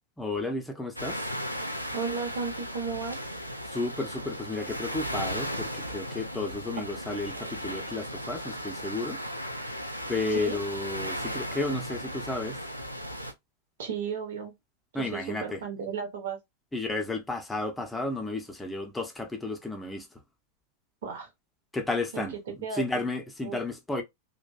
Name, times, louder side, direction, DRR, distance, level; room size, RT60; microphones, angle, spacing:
voice 1, 0.2-1.2 3.7-9.2 10.1-12.6 14.9-15.6 16.7-20.1 21.7-24.0, left 2 dB, 10° left, 0.6 m, -32 dB
sound 1, 1.0-13.3, equal, 90° right, 0.3 m, -36 dB
voice 2, 1.9-3.2 10.3-10.6 13.8-14.5 15.0-16.4 21.0-21.3 22.1-23.0 23.4-23.6, right 6 dB, 60° right, 0.8 m, -34 dB
2.5 x 2.1 x 2.3 m
figure-of-eight pair, 90°, 0 cm